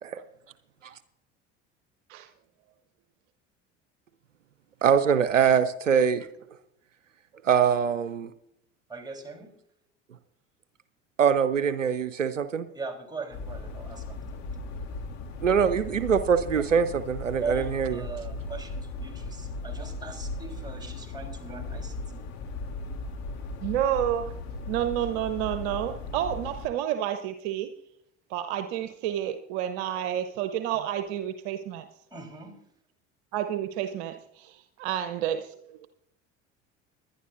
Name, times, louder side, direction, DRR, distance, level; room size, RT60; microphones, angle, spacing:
voice 1, 4.8-6.3 7.4-8.3 11.2-12.7 15.4-18.1, right 7 dB, 90° right, 13 dB, 0.6 m, -23 dB
voice 2, 8.9-9.5 12.7-14.2 17.4-22.2 32.1-32.5, right 4 dB, 10° right, 2 dB, 3.6 m, -39 dB
sound 1, 13.3-26.7, left 3 dB, 45° left, 2.3 m, -37 dB
voice 3, 23.6-24.4 24.7-27.7 28.3-31.9 33.3-35.9, right 11 dB, 60° right, 9 dB, 0.9 m, -30 dB
21.5 x 11.5 x 2.6 m, 0.74 s
figure-of-eight pair, 65°, 37 cm